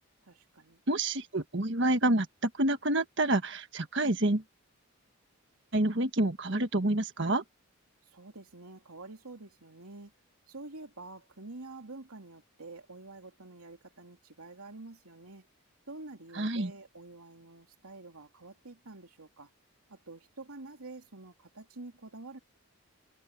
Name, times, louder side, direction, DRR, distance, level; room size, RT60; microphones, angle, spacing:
voice 1, 0.2-0.8 8.1-10.1 10.5-15.5 15.9-19.5 19.9-22.4, right 2 dB, 85° right, 3.0 m, -48 dB
voice 2, 0.9-4.4 5.7-7.4 16.3-16.7, right 1 dB, 55° right, 1.5 m, -28 dB
head